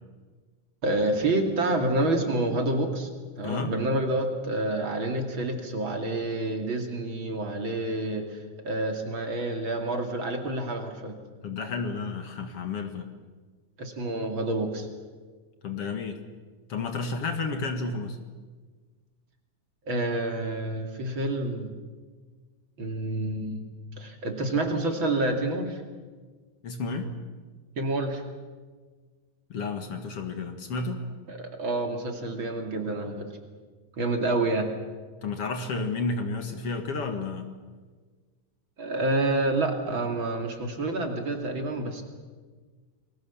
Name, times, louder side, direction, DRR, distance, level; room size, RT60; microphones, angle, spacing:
voice 1, 0.8-3.1 3.4-11.1 13.8-14.9 19.9-21.7 22.8-23.6 24.0-25.8 27.8-28.2 31.3-33.3 34.0-34.7 38.8-42.0, right 2 dB, 45° right, 4 dB, 3.1 m, -28 dB
voice 2, 3.4-3.7 11.4-13.1 15.6-16.2 16.7-18.2 26.6-27.1 29.5-31.0 35.2-37.5, left 3 dB, 55° left, 6 dB, 2.6 m, -31 dB
29.5 x 21.5 x 7.2 m, 1.4 s
omnidirectional pair, 3.4 m